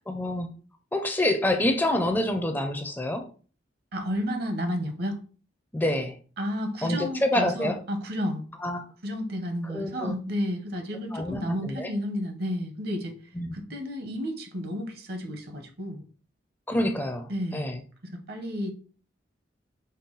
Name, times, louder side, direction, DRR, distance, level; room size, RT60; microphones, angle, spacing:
voice 1, 0.1-0.5 0.9-3.3 5.7-6.2 6.8-7.8 8.6-8.8 9.7-10.1 11.1-11.9 13.3-13.5 16.7-17.8, left 1 dB, 10° left, 5 dB, 0.4 m, -27 dB
voice 2, 3.9-5.2 6.4-8.4 9.0-13.1 13.5-16.0 17.3-17.8 18.1-18.7, equal, 55° right, 5 dB, 0.9 m, -31 dB
5.3 x 2.2 x 3.9 m, 0.39 s
head